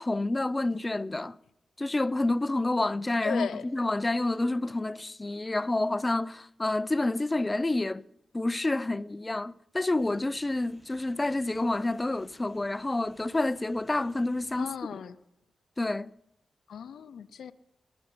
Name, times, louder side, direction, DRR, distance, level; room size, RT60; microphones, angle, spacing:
voice 1, 0.0-1.4 1.8-8.0 8.3-15.0 15.8-16.1, left 2 dB, 30° left, 0.5 m, -29 dB
voice 2, 3.2-3.6 14.6-15.2 16.7-17.5, left 7 dB, 80° left, 0.5 m, -36 dB
sound 1, 9.8-14.8, right 1 dB, 45° right, 5.8 m, -60 dB
20.5 x 7.0 x 5.6 m
cardioid pair, 45°, 0 cm